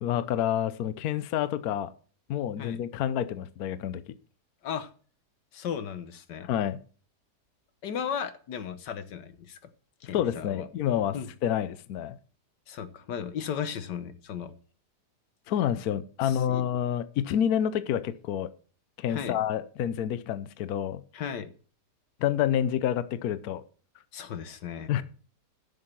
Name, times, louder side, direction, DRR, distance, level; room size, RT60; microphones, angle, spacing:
voice 1, 0.0-1.9 2.3-4.0 6.4-6.8 10.1-11.1 11.4-12.2 15.5-18.5 19.0-21.0 22.2-23.6 24.9-25.0, left 10 dB, 65° left, 14 dB, 1.1 m, -28 dB
voice 2, 5.5-6.5 7.8-9.6 10.0-10.7 11.1-11.3 12.7-14.5 16.2-16.6 19.1-19.4 21.1-21.5 24.1-25.0, left 8 dB, 90° left, 11 dB, 1.7 m, -36 dB
11.0 x 6.6 x 6.0 m, 0.41 s
omnidirectional pair, 1.8 m